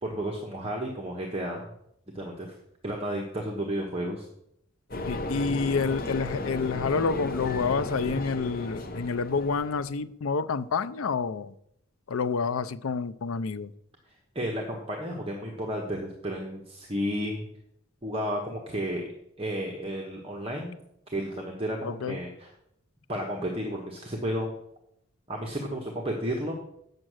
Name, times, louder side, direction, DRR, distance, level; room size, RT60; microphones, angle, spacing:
voice 1, 0.0-1.7 2.1-2.5 2.8-4.3 14.3-17.5 18.0-19.1 19.4-20.7 21.1-22.5 23.1-24.5 25.3-26.5, equal, 25° right, 1.3 m, -32 dB
sound 1, 4.9-9.9, left 2 dB, 45° left, 1.0 m, -34 dB
voice 2, 5.1-11.5 12.1-13.7 21.8-22.2, left 5 dB, 80° left, 0.5 m, -28 dB
9.0 x 7.5 x 6.3 m
head